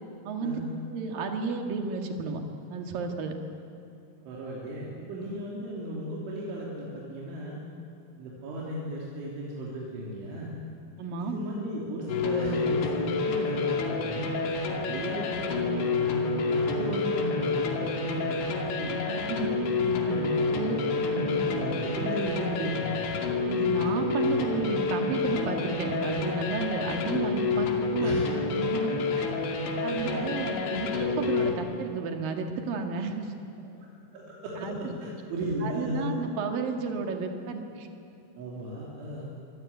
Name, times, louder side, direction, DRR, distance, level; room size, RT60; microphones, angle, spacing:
voice 1, 0.2-0.6 0.9-2.4 2.7-3.4 11.0-11.4 18.9-19.5 20.4-20.8 21.1-21.5 23.5-28.3 28.6-29.3 29.8-33.3 34.6-35.0 35.6-37.9, right 4 dB, 55° right, 4 dB, 3.3 m, -32 dB
voice 2, 4.3-7.6 8.2-10.5 11.2-14.3 14.9-19.0 19.6-23.1 27.9-28.3 28.8-28.9 34.1-36.1 38.4-39.3, equal, 80° right, -4 dB, 5.6 m, -35 dB
sound 1, 12.1-31.5, left 4 dB, 70° left, 4.5 m, -29 dB
25.5 x 23.5 x 9.7 m, 2.6 s
omnidirectional pair, 5.4 m